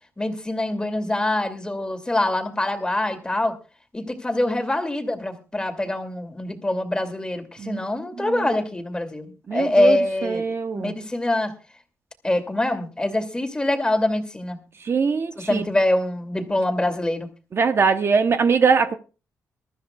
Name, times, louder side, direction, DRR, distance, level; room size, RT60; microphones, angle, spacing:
voice 1, 0.2-3.5 3.9-10.4 10.7-11.5 12.2-14.6 15.4-17.3, left 1 dB, 15° left, 2.4 m, -24 dB
voice 2, 9.5-10.9 14.8-15.6 17.5-19.0, right 5 dB, 45° right, 0.9 m, -22 dB
23.0 x 13.0 x 2.3 m
cardioid pair, 95°, 6 cm